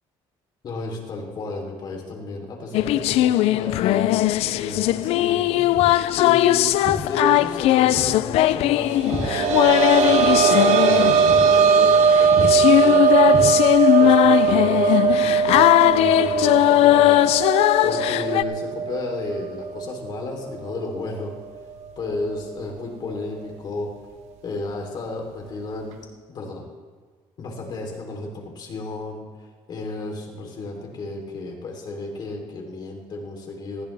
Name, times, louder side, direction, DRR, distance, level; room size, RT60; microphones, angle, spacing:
voice 1, 0.6-5.6 6.1-9.6 10.0-21.4 22.0-23.9 24.4-25.9 26.3-26.6 27.4-29.3 29.7-33.9, left 2 dB, 40° left, 1 dB, 3.3 m, -32 dB
sound 1, 2.7-18.4, left 15 dB, 70° left, 0.4 m, -19 dB
Walk footsteps, 5.7-6.0 6.8-7.1 7.9-8.2 8.5-9.9 10.2-10.4 10.8-11.0 11.3-11.5 11.8-12.0 12.3-12.5 13.3-14.0, right 2 dB, 55° right, 2.9 m, -31 dB
sound 2, 8.9-20.3 20.7-20.8 22.3-22.4, right 6 dB, 85° right, 1.2 m, -20 dB
19.5 x 15.0 x 3.4 m, 1.5 s
cardioid pair, 145°, 11 cm